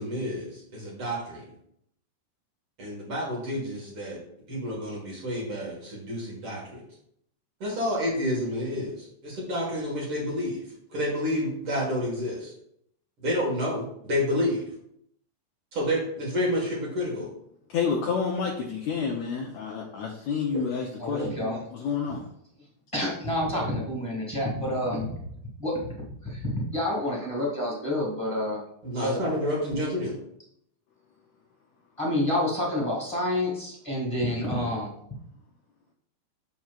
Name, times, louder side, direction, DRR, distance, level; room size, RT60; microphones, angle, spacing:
voice 1, 0.0-1.2 2.8-4.2 4.5-6.8 7.6-10.6 10.9-12.5 13.2-14.6 15.7-17.3 20.5-20.6 28.8-30.2, left 1 dB, 45° right, -3 dB, 2.1 m, -29 dB
voice 2, 17.7-21.2 21.7-22.3, left 5 dB, 75° left, 0 dB, 1.7 m, -29 dB
voice 3, 21.0-21.6 22.9-25.1 25.6-25.9 26.2-28.6 29.0-29.2 32.0-34.9, left 1 dB, 10° left, -4 dB, 1.5 m, -28 dB
7.6 x 7.0 x 2.4 m, 0.71 s
omnidirectional pair, 3.9 m